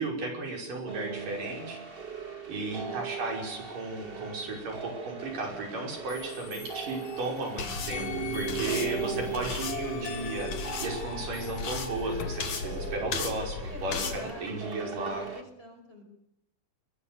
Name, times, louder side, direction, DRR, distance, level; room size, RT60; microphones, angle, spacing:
voice 1, 0.0-1.8 2.5-15.2, right 2 dB, 75° right, 2 dB, 7.4 m, -35 dB
sound 1, 0.9-15.4, right 6 dB, 20° right, 1.6 m, -39 dB
voice 2, 2.5-3.1 8.4-9.6 13.7-16.0, left 1 dB, 15° left, 4 dB, 5.7 m, -46 dB
sound 2, 6.1-7.5 7.9-13.0, left 9 dB, 75° left, 2.7 m, -43 dB
sound 3, 7.6-14.2, left 5 dB, 55° left, 3.6 m, -36 dB
25.0 x 23.0 x 6.8 m, 0.75 s
omnidirectional pair, 3.9 m